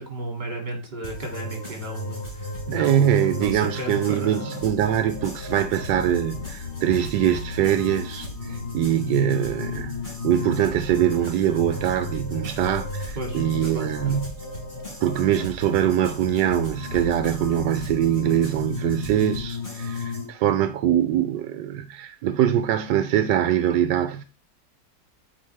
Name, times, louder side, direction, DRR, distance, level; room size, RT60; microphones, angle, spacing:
voice 1, 0.0-4.6 13.1-13.9, right 2 dB, 35° right, 2.2 m, -34 dB
sound 1, 1.0-20.2, left 2 dB, 30° left, 4.6 m, -34 dB
voice 2, 2.7-14.3 15.0-24.2, right 10 dB, 85° right, 1.2 m, -23 dB
sound 2, 4.6-19.0, left 7 dB, 75° left, 0.6 m, -43 dB
8.9 x 4.6 x 3.2 m
omnidirectional pair, 1.8 m